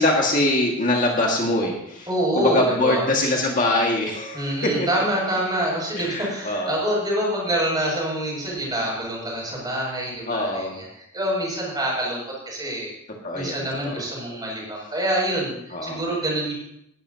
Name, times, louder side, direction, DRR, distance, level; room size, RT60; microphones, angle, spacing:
voice 1, 0.0-2.1 2.4-4.9 6.0-6.8 10.3-10.8 13.2-13.6 13.8-14.0 15.7-16.0, left 1 dB, 40° left, -1 dB, 1.8 m, -23 dB
voice 2, 2.1-3.1 4.3-12.9 13.3-16.5, right 1 dB, 20° right, -3 dB, 6.4 m, -26 dB
19.0 x 12.0 x 2.8 m, 0.76 s
head